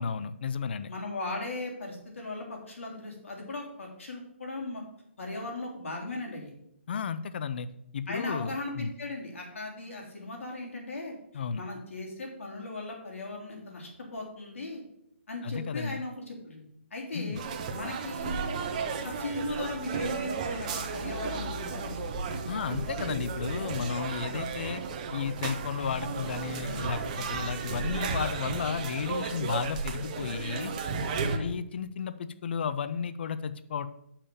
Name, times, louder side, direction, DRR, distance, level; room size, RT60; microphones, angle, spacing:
voice 1, 0.0-0.9 6.9-7.7 7.9-8.9 11.3-11.6 15.4-16.0 17.1-17.4 22.5-24.8 25.1-30.7 31.4-33.9, left 6 dB, 50° left, 13 dB, 0.6 m, -33 dB
voice 2, 0.9-4.8 5.2-6.5 8.1-11.1 11.5-14.8 15.3-16.6 16.9-17.4 17.7-18.5 18.9-22.0 31.2-31.5, left 2 dB, 75° left, -1 dB, 3.4 m, -38 dB
sound 1, 17.4-31.4, right 5 dB, 35° right, 1.0 m, -34 dB
6.9 x 5.7 x 6.8 m, 0.75 s
hypercardioid pair, 160°, 7 cm